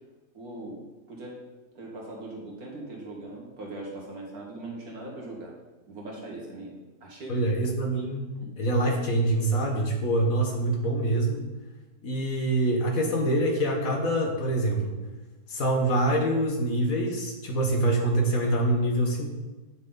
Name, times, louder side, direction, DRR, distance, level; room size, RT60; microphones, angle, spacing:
voice 1, 0.3-1.4 1.7-5.5 5.9-7.4 8.4-8.5, right 2 dB, 75° right, -2 dB, 2.3 m, -40 dB
voice 2, 7.3-8.3 8.6-11.4 12.0-15.0 15.5-19.3, right 1 dB, 65° left, 1 dB, 1.8 m, -25 dB
9.6 x 6.2 x 3.9 m, 1.2 s
omnidirectional pair, 1.6 m